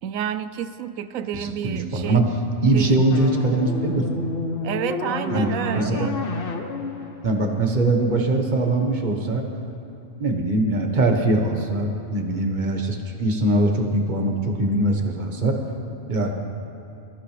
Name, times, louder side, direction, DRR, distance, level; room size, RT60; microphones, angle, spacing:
voice 1, 0.0-2.3 2.7-3.0 4.6-6.2, right 9 dB, 80° right, 12 dB, 1.0 m, -30 dB
voice 2, 1.3-2.3 2.6-4.1 5.3-5.5 5.7-6.1 7.2-9.4 10.2-15.6 16.1-16.4, right 2 dB, 35° right, 3 dB, 1.4 m, -22 dB
sound 1, 3.1-8.2, left 3 dB, 45° left, 1.1 m, -30 dB
21.5 x 14.0 x 3.4 m, 2.7 s
omnidirectional pair, 1.4 m